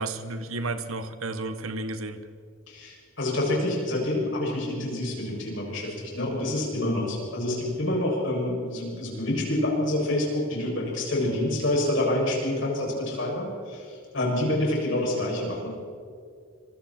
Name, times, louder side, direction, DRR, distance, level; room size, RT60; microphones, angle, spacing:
voice 1, 0.0-2.2, right 2 dB, 90° right, 10 dB, 1.4 m, -32 dB
voice 2, 2.7-15.7, left 1 dB, 65° left, -2 dB, 7.1 m, -27 dB
26.5 x 23.0 x 4.5 m, 2.3 s
head